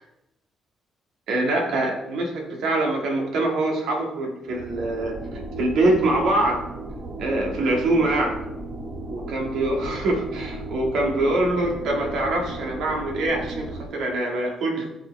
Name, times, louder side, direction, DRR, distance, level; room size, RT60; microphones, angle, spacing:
voice 1, 1.3-6.6 7.2-8.4 9.1-14.9, right 2 dB, 80° right, 0 dB, 2.0 m, -24 dB
sound 1, 4.5-13.8, right 2 dB, 45° right, 1.6 m, -35 dB
15.0 x 5.1 x 3.4 m, 0.88 s
cardioid pair, 90°, 0 cm